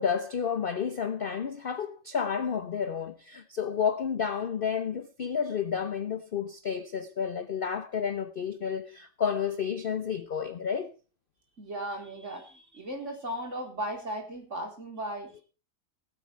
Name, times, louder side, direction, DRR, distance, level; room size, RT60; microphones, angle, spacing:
voice 1, 0.0-10.9, left 7 dB, 50° left, 0.6 m, -31 dB
voice 2, 11.6-15.4, right 1 dB, 45° right, 4.2 m, -36 dB
18.5 x 8.3 x 4.6 m
omnidirectional pair, 1.8 m